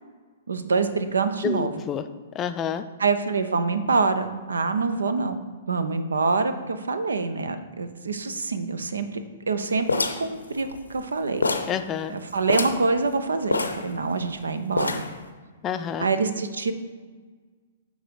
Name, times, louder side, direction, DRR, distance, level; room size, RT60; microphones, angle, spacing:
voice 1, 0.5-1.7 3.0-5.4 5.7-9.2 9.5-9.9 10.2-11.4 12.1-15.0 16.0-16.7, right 4 dB, 70° right, 10 dB, 0.6 m, -25 dB
voice 2, 1.4-2.0 2.3-2.8 11.7-12.2 15.6-16.1, left 8 dB, 25° left, 10 dB, 0.4 m, -28 dB
sound 1, 9.9-11.1 11.4-11.8 12.1-12.2 12.4-12.9 13.5-14.3 14.8-15.2, left 3 dB, 75° left, 0.6 m, -26 dB
8.7 x 4.0 x 4.6 m, 1.5 s
figure-of-eight pair, 110°, 0 cm